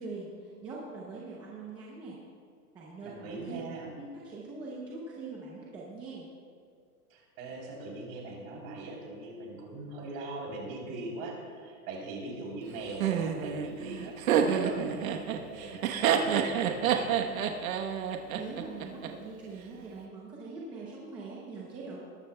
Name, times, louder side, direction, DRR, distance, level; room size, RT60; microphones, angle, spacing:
voice 1, 0.0-2.2 2.7-3.6 4.0-6.3 18.3-22.0, right 3 dB, 10° right, -5 dB, 0.6 m, -42 dB
voice 2, 3.0-3.9 7.1-17.2, right 2 dB, 35° right, -2 dB, 3.4 m, -41 dB
Laughter, 13.0-19.1, right 8 dB, 60° right, 1.2 m, -28 dB
20.5 x 12.0 x 2.2 m, 2.2 s
supercardioid pair, 170°, 46 cm